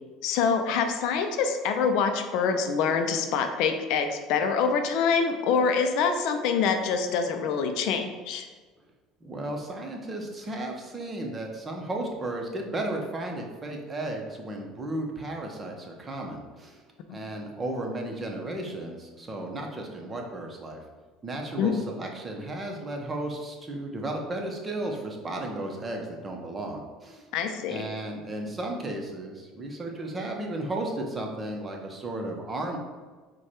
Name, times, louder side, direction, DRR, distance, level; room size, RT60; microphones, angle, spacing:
voice 1, 0.2-8.5 21.6-21.7 27.3-27.8, left 5 dB, 70° left, 6 dB, 0.4 m, -25 dB
voice 2, 9.2-16.8 17.1-20.8 21.2-27.3 27.7-32.8, right 1 dB, 25° right, 1 dB, 0.8 m, -34 dB
4.6 x 2.3 x 4.3 m, 1.4 s
supercardioid pair, 85°, 0 cm